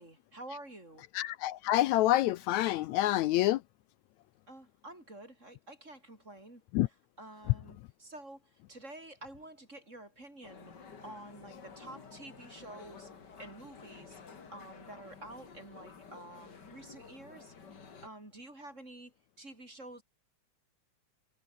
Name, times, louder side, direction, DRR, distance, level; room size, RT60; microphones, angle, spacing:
voice 1, 0.0-1.0 4.5-6.6 7.2-10.7 11.0-13.1 13.4-14.2 14.5-17.5 18.0-20.0, right 1 dB, 25° right, 5.8 m, -49 dB
voice 2, 1.1-3.6 6.7-6.9, left 15 dB, 80° left, 1.9 m, -27 dB
sound 1, 10.4-18.1, left 5 dB, 35° left, 2.6 m, -52 dB
omnidirectional pair, 3.4 m